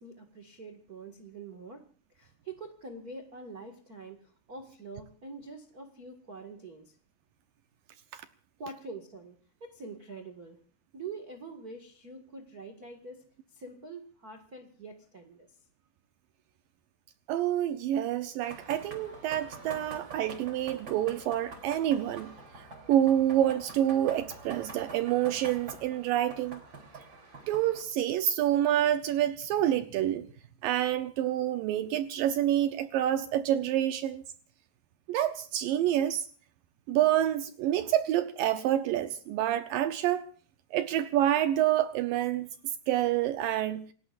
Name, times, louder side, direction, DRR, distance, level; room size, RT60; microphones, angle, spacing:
voice 1, 0.0-1.8 2.1-7.0 8.6-10.6 10.9-15.5, right 3 dB, 65° right, 0.9 m, -45 dB
voice 2, 17.3-22.3 22.9-26.6 27.5-30.3 30.6-34.2 35.1-36.3 36.9-40.3 40.7-42.5 42.9-43.9, right 11 dB, 85° right, 1.9 m, -27 dB
sound 1, 18.4-27.8, right 3 dB, 30° right, 3.7 m, -46 dB
29.0 x 19.0 x 2.5 m
omnidirectional pair, 5.1 m